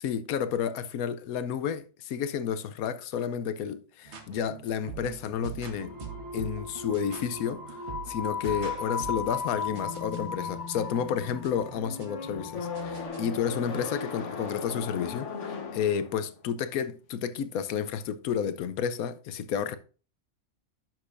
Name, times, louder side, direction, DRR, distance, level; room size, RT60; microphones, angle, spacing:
voice 1, 0.0-6.0 6.3-7.8 8.1-19.8, left 8 dB, 80° left, 1.1 m, -31 dB
sound 1, 4.0-13.4, right 6 dB, 55° right, 1.3 m, -45 dB
sound 2, 5.8-13.1, left 5 dB, 15° left, 1.9 m, -37 dB
sound 3, 8.4-16.5, left 4 dB, 55° left, 1.4 m, -39 dB
10.5 x 6.5 x 2.5 m
omnidirectional pair, 1.5 m